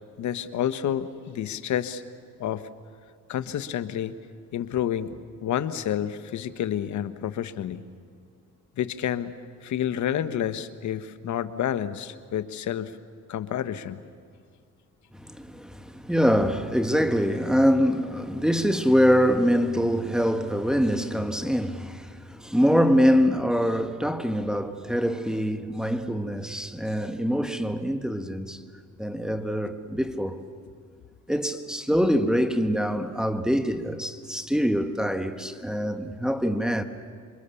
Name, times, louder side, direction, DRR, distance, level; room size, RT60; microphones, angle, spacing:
voice 1, 0.2-2.0 2.4-2.6 3.3-4.1 4.5-7.8 8.8-9.3 9.6-13.0 13.3-14.0, left 10 dB, 70° left, 1.3 m, -29 dB
voice 2, 15.1-28.6 29.0-30.4 31.3-36.8, equal, ahead, 1.6 m, -24 dB
27.5 x 23.0 x 7.0 m
cardioid pair, 90°, 30 cm